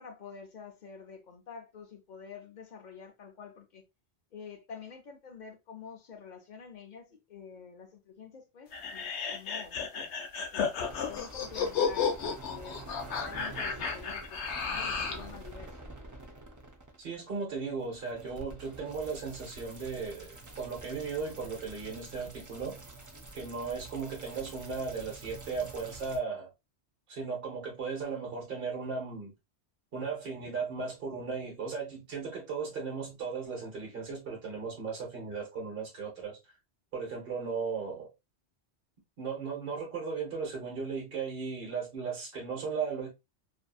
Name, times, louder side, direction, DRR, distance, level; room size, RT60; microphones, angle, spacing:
voice 1, 0.0-3.8 4.3-9.8 10.5-12.9 13.2-15.9, left 6 dB, 55° left, 0.6 m, -48 dB
sound 1, 8.7-15.3, left 6 dB, 80° left, 0.9 m, -33 dB
sound 2, 10.8-26.2, right 2 dB, 30° right, 0.4 m, -48 dB
voice 2, 17.0-22.8 23.3-26.5 27.1-29.3 29.9-36.4 36.9-38.1 39.2-43.1, right 5 dB, 55° right, 1.0 m, -36 dB
2.6 x 2.6 x 2.3 m
omnidirectional pair, 1.1 m